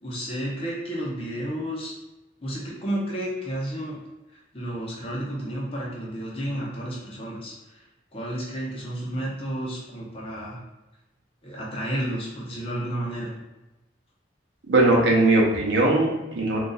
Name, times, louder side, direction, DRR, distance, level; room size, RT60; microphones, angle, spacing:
voice 1, 0.0-1.9 2.4-4.0 4.3-7.8 8.1-10.6 11.4-13.3, right 1 dB, 30° left, -5 dB, 0.6 m, -31 dB
voice 2, 14.7-16.6, right 2 dB, 70° right, -2 dB, 0.7 m, -20 dB
2.5 x 2.3 x 3.9 m, 1.0 s
head